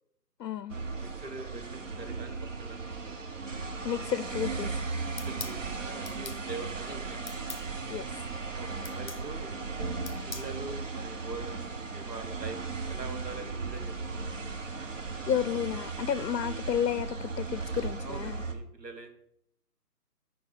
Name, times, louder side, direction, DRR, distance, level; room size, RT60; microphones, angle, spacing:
voice 1, 0.4-0.8 3.8-4.8 7.9-8.3 15.3-18.4, left 9 dB, 90° left, 0.6 m, -31 dB
sound 1, 0.7-18.5, right 4 dB, 50° right, 0.9 m, -36 dB
voice 2, 1.0-3.3 5.3-7.4 8.5-9.5 10.0-12.6 12.9-14.2 14.8-15.2 16.2-16.3 18.0-19.2, right 3 dB, 85° right, 1.5 m, -44 dB
sound 2, 5.2-5.6 6.1-6.4 7.3-7.7 8.8-9.2 10.1-10.5, left 4 dB, 45° left, 0.6 m, -41 dB
13.5 x 4.9 x 4.0 m
hypercardioid pair, 175°, 48 cm